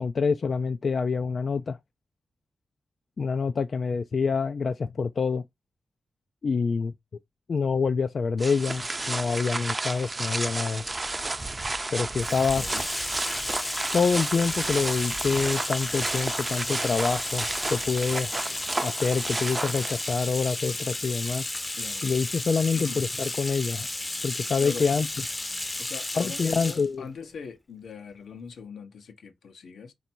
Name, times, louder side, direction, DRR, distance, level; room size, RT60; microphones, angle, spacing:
voice 1, 0.0-1.8 3.2-5.4 6.4-6.9 7.5-10.8 11.9-12.7 13.9-18.3 18.8-21.4 22.0-23.9 24.2-25.1 26.2-27.0, left 5 dB, 55° left, 0.3 m, -26 dB
sound 1, 8.4-20.3, right 2 dB, 25° right, 0.5 m, -32 dB
Bathtub (filling or washing), 12.2-26.9, left 2 dB, 20° left, 0.7 m, -33 dB
voice 2, 12.5-12.9 21.8-22.1 22.7-23.0 24.6-24.9 25.8-29.9, left 5 dB, 80° left, 0.9 m, -41 dB
4.4 x 2.7 x 4.3 m
cardioid pair, 90°, 0 cm